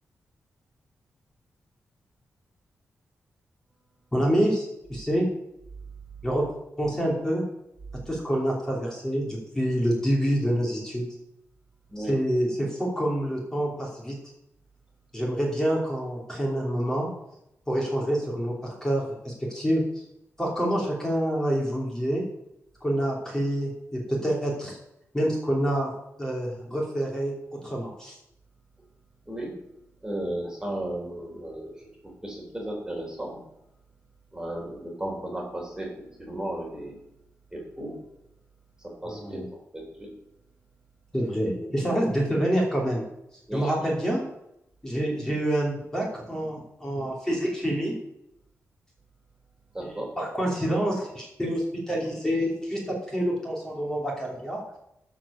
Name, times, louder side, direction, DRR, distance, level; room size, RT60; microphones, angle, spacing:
voice 1, 4.1-5.2 6.2-6.4 6.8-7.4 8.1-11.1 12.0-14.1 15.1-17.1 17.7-19.8 20.4-22.2 22.8-24.8 25.1-25.9 26.2-27.3 27.6-28.1 39.0-39.4 41.1-43.0 43.5-44.2 44.8-48.0 49.8-54.8, equal, 10° left, -3 dB, 3.0 m, -27 dB
voice 2, 30.0-31.7 32.2-33.4 34.3-37.0 37.5-38.0 39.0-39.4 39.7-40.1 43.5-43.7 49.7-50.1, right 1 dB, 15° right, -1 dB, 3.1 m, -34 dB
12.5 x 4.8 x 7.2 m, 0.83 s
wide cardioid pair, 115°, 5 cm